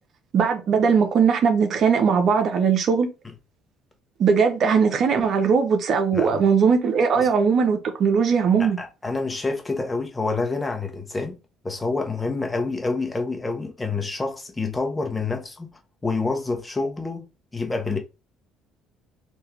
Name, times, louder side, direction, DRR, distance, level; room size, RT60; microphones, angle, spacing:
voice 1, 0.3-3.1 4.2-8.8, right 6 dB, 55° right, 0.8 m, -19 dB
voice 2, 6.1-6.4 7.2-7.3 8.6-11.4 11.6-18.0, left 3 dB, 20° left, 1.1 m, -28 dB
3.6 x 2.8 x 3.2 m
supercardioid pair, 70°, 0 cm